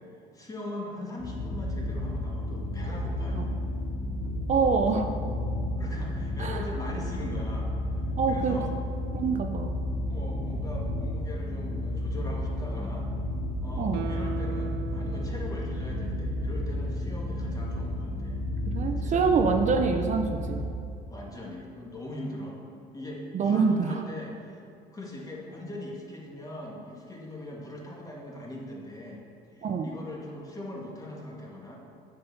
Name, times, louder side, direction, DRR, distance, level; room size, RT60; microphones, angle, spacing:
voice 1, 0.3-3.6 4.8-5.0 5.8-8.7 10.1-13.1 13.6-18.4 19.0-19.2 21.1-22.6 22.9-24.6 24.9-29.2 29.5-31.8, left 1 dB, 20° left, -2 dB, 2.0 m, -40 dB
sound 1, 1.2-20.6, left 1 dB, 55° left, 2.3 m, -32 dB
voice 2, 4.5-5.1 6.4-6.6 8.2-8.6 9.1-9.8 13.8-14.0 18.6-20.7 23.3-24.0 29.6-29.9, right 5 dB, 45° right, 5 dB, 0.7 m, -25 dB
Guitar, 13.9-17.2 17.5-17.6, right 12 dB, 90° right, 0.4 m, -40 dB
7.7 x 6.6 x 6.9 m, 2.5 s
cardioid pair, 110°, 17 cm